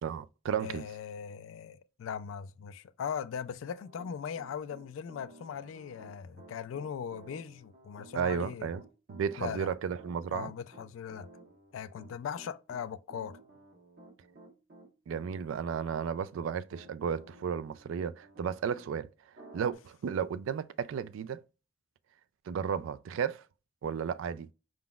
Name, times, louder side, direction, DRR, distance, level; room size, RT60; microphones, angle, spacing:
voice 1, 0.0-0.8 8.1-8.8 9.1-10.5 15.1-19.1 19.5-21.4 22.5-23.4 23.8-24.5, right 7 dB, 80° right, 0.3 m, -33 dB
voice 2, 0.6-8.7 9.4-9.7 10.3-11.3 11.7-13.4, left 7 dB, 85° left, 0.3 m, -39 dB
Piano, 3.7-18.9 19.4-19.7, right 1 dB, 55° right, 1.1 m, -54 dB
4.9 x 3.7 x 2.3 m
head